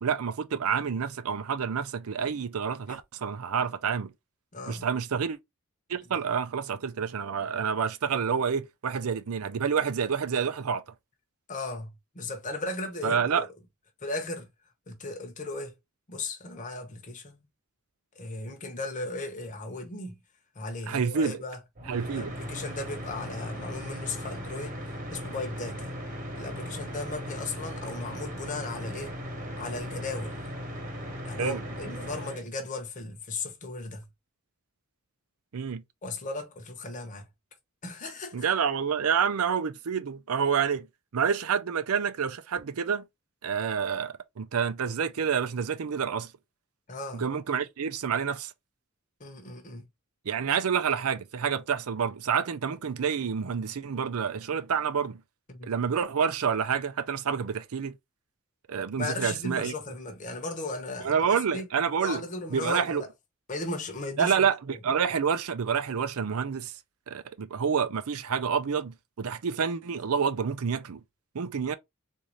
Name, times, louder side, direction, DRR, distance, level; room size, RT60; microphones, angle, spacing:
voice 1, 0.0-4.1 4.7-5.4 5.9-10.8 13.0-13.4 20.9-21.4 21.9-22.3 31.4-31.6 35.5-35.8 38.3-40.9 41.1-43.0 43.4-46.3 47.1-48.5 50.3-55.2 55.6-57.9 58.7-59.7 61.0-62.2 62.5-63.0 64.2-66.7 67.1-71.0 71.3-71.7, right 6 dB, 85° right, 0.5 m, -28 dB
voice 2, 4.5-4.9 11.5-13.5 14.0-14.5 14.9-15.7 16.1-17.4 18.2-20.2 20.5-21.6 22.0-24.8 25.1-25.9 26.3-29.1 29.6-30.3 31.2-34.1 36.0-37.3 37.8-38.5 46.9-47.2 49.2-49.9 55.5-55.7 59.0-61.7 62.0-63.1 63.5-64.4, left 2 dB, 35° left, 0.9 m, -36 dB
sound 1, 21.8-32.4, equal, 40° right, 1.2 m, -37 dB
3.9 x 2.7 x 3.0 m
head